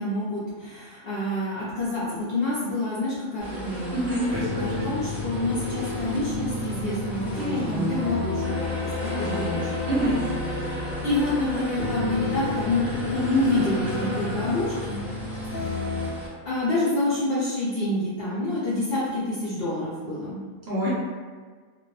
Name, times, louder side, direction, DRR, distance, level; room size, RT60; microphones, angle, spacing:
voice 1, 0.0-4.0 4.6-8.4 8.8-9.7 11.0-15.0 15.5-16.0 16.5-20.4, left 2 dB, 60° left, -9 dB, 0.7 m, -27 dB
sound 1, 3.4-16.3, equal, ahead, 0.4 m, -34 dB
voice 2, 3.9-4.9 9.9-10.2 20.7-20.9, right 1 dB, 60° right, -8 dB, 0.8 m, -26 dB
sound 2, 4.3-16.1, left 3 dB, 80° left, 1.1 m, -32 dB
2.5 x 2.3 x 2.2 m, 1.5 s
omnidirectional pair, 1.4 m